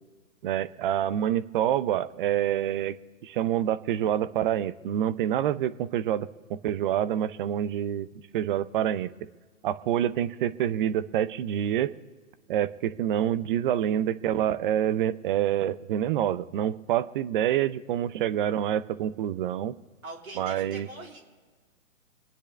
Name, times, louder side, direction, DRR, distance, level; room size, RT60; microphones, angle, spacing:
voice 1, 0.4-3.0 3.2-8.1 8.3-9.1 9.6-11.9 12.5-19.7 20.4-20.9, right 11 dB, 40° right, 16 dB, 0.6 m, -27 dB
voice 2, 20.0-21.2, right 2 dB, 90° right, 0 dB, 3.3 m, -42 dB
26.5 x 9.9 x 3.3 m, 1.4 s
hypercardioid pair, 125°, 41 cm